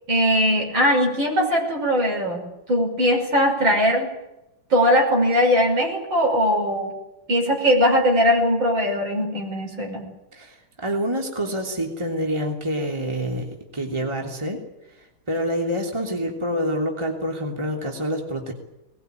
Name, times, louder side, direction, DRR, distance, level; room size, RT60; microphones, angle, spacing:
voice 1, 0.1-4.1 4.7-6.9 7.3-10.0, equal, 60° right, 1 dB, 6.7 m, -20 dB
voice 2, 10.3-14.6 15.3-18.5, equal, 10° right, 1 dB, 3.2 m, -27 dB
21.0 x 20.5 x 9.4 m, 0.93 s
omnidirectional pair, 2.4 m